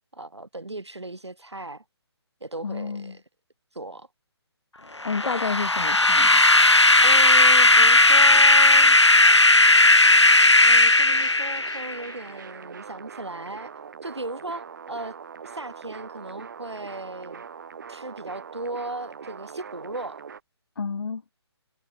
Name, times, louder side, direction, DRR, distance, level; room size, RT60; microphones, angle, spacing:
voice 1, 0.1-1.8 2.4-3.2 3.7-4.1 5.2-5.4 7.0-8.9 10.6-13.7 14.0-15.2 15.4-17.4 17.9-20.2, right 2 dB, 80° right, 1.6 m, -36 dB
voice 2, 2.6-3.1 5.0-6.4 20.8-21.2, left 5 dB, 55° left, 1.2 m, -30 dB
sound 1, 5.0-12.0, left 2 dB, 85° left, 0.9 m, -16 dB
sound 2, 5.3-9.6, equal, ahead, 6.0 m, -60 dB
sound 3, 7.0-20.4, right 6 dB, 45° right, 1.4 m, -42 dB
figure-of-eight pair, 140°, 14 cm